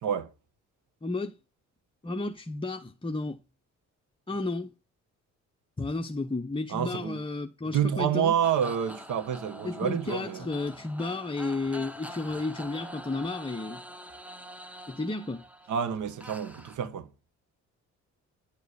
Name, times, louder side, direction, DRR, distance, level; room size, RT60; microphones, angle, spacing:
voice 1, 1.0-1.4 2.0-3.4 4.3-4.7 5.8-8.4 9.6-13.8 14.9-15.4, left 3 dB, 15° left, 1.0 m, -32 dB
voice 2, 6.7-7.2 7.7-10.5 15.7-17.1, right 8 dB, 80° right, 1.9 m, -28 dB
sound 1, 8.4-16.8, equal, 5° right, 1.5 m, -45 dB
10.5 x 7.0 x 7.1 m
cardioid pair, 90°, 30 cm